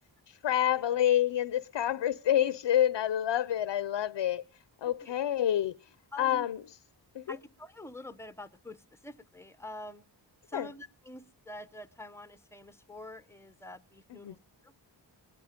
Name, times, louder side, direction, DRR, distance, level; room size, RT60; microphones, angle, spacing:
voice 1, 0.3-4.4 4.8-5.8 6.2-6.6 7.1-7.4 10.5-10.7 14.1-14.3, left 11 dB, 75° left, 0.7 m, -28 dB
voice 2, 6.1-6.5 7.3-10.0 10.5-14.4 14.6-14.7, left 1 dB, 5° left, 0.8 m, -46 dB
20.0 x 12.0 x 5.1 m
wide cardioid pair, 165°, 43 cm